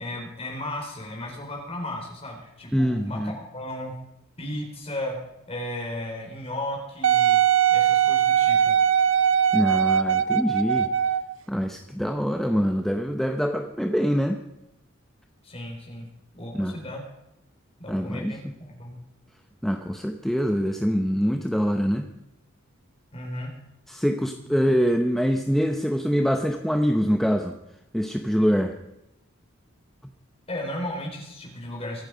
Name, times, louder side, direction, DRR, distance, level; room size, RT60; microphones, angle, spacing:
voice 1, 0.0-3.9 4.4-5.2 5.5-7.4 7.7-8.8 15.4-16.1 16.3-17.0 17.8-19.0 23.1-23.5 24.4-24.5 30.5-32.0, left 1 dB, 30° left, 0 dB, 4.7 m, -35 dB
voice 2, 2.7-3.3 9.5-10.9 11.5-14.4 16.5-16.8 17.9-18.4 19.6-22.1 23.9-27.6 27.9-28.8 30.0-30.1, equal, ahead, 4 dB, 0.8 m, -24 dB
Wind instrument woodwind instrument, 7.0-11.3 12.0-12.1, right 9 dB, 70° right, 0.7 m, -20 dB
25.0 x 9.0 x 5.1 m, 0.86 s
head